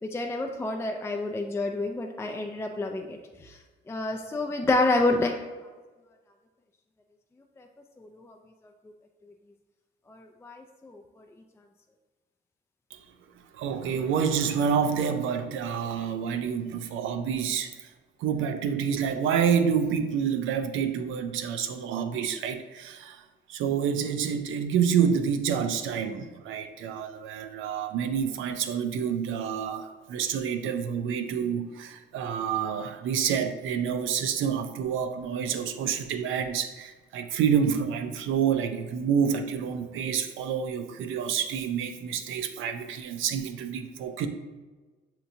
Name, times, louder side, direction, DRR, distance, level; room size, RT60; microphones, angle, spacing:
voice 1, 0.0-3.6 3.9-5.3 7.6-7.7 8.0-8.4 10.1-11.2, left 2 dB, 15° left, 2 dB, 0.3 m, -29 dB
voice 2, 13.5-17.9 18.2-23.2 23.5-44.3, right 7 dB, 80° right, 7 dB, 0.5 m, -28 dB
6.7 x 2.9 x 2.6 m, 1.3 s
cardioid pair, 90°, 20 cm